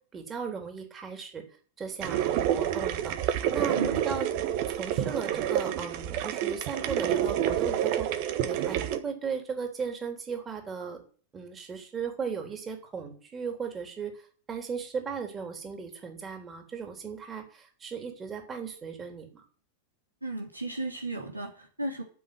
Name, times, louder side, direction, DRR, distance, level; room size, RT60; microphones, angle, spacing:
voice 1, 0.1-1.4 1.8-4.3 4.7-11.0 11.3-19.4, right 6 dB, 20° right, 4 dB, 3.5 m, -37 dB
sound 1, 2.0-9.0, right 11 dB, 45° right, 1.4 m, -28 dB
voice 2, 20.2-22.0, right 2 dB, 85° right, 1 dB, 3.1 m, -35 dB
9.5 x 7.7 x 9.4 m, 0.44 s
figure-of-eight pair, 90°, 0 cm